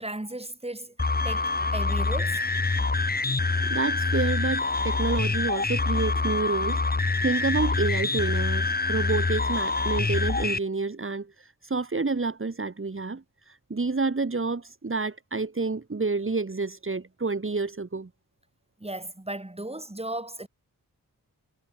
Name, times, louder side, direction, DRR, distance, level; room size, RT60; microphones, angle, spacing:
voice 1, 0.0-2.5 18.8-20.5, right 1 dB, 15° right, 4.7 m, -36 dB
sound 1, 1.0-10.6, left 3 dB, 25° left, 1.3 m, -26 dB
voice 2, 3.7-6.8 7.2-18.1, right 3 dB, 35° right, 2.5 m, -29 dB
cardioid pair, 45°, 37 cm